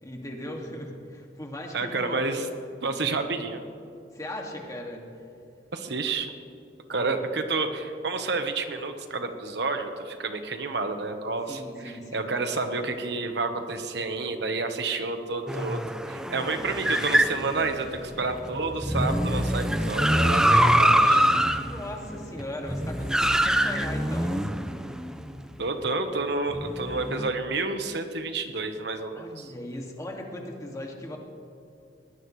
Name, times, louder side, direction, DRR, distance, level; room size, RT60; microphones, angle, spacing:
voice 1, 0.0-2.3 3.0-3.2 4.1-5.1 6.9-7.2 11.5-12.3 21.6-24.4 29.2-31.2, left 1 dB, 20° left, 0 dB, 2.2 m, -38 dB
voice 2, 1.7-2.4 2.8-3.6 5.7-6.3 6.9-21.2 25.6-29.5, right 3 dB, 70° right, 6 dB, 1.2 m, -30 dB
sound 1, 15.5-25.4 26.5-27.3, equal, 5° right, 0.6 m, -24 dB
21.5 x 19.0 x 3.2 m, 2.5 s
head